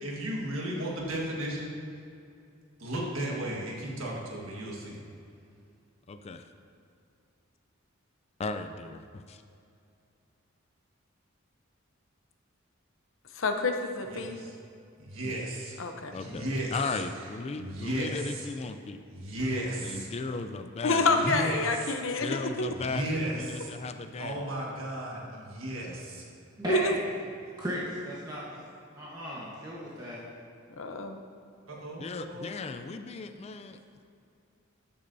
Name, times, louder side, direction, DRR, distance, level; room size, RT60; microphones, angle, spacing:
voice 1, 0.0-1.7 2.8-5.0 14.1-14.5 15.0-15.8 16.2-18.5 19.1-20.1 21.0-21.9 22.7-23.7 24.2-26.2 31.6-32.5, right 1 dB, 80° right, -3 dB, 1.5 m, -35 dB
voice 2, 6.1-6.4 8.4-9.4 15.2-15.4 16.1-16.4 16.7-19.0 19.8-21.0 22.2-24.4 32.0-33.8, left 4 dB, 30° left, 8 dB, 0.4 m, -36 dB
voice 3, 13.3-14.4 15.8-16.1 20.8-22.7 26.7-27.0 30.7-31.2, left 2 dB, 65° left, 5 dB, 0.7 m, -28 dB
voice 4, 26.6-27.0 27.6-30.2, equal, 20° right, -6 dB, 1.2 m, -36 dB
13.0 x 8.4 x 2.7 m, 2.5 s
head